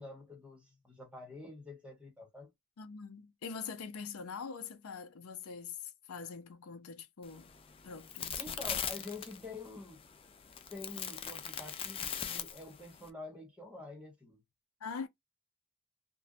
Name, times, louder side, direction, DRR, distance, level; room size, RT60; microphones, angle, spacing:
voice 1, 0.0-2.5 8.4-10.0 10.7-14.4, left 2 dB, 5° right, 1.1 m, -47 dB
voice 2, 2.8-7.5 7.8-8.6 14.8-15.1, left 5 dB, 75° left, 0.5 m, -44 dB
sound 1, 7.2-13.1, left 8 dB, 25° left, 0.3 m, -41 dB
2.6 x 2.2 x 2.3 m
head